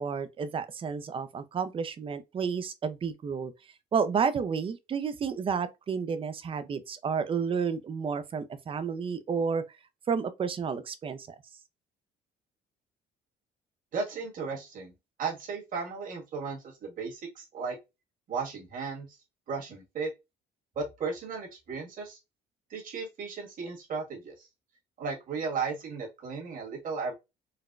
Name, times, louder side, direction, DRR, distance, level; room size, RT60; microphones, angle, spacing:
voice 1, 0.0-3.5 3.9-9.6 10.1-11.4, right 6 dB, 30° right, 0.5 m, -31 dB
voice 2, 13.9-14.9 15.2-17.7 18.3-19.2 19.5-20.1 20.7-22.2 22.7-24.5 25.0-27.1, right 4 dB, 55° right, 1.6 m, -35 dB
4.0 x 2.2 x 2.4 m
cardioid pair, 110°, 17 cm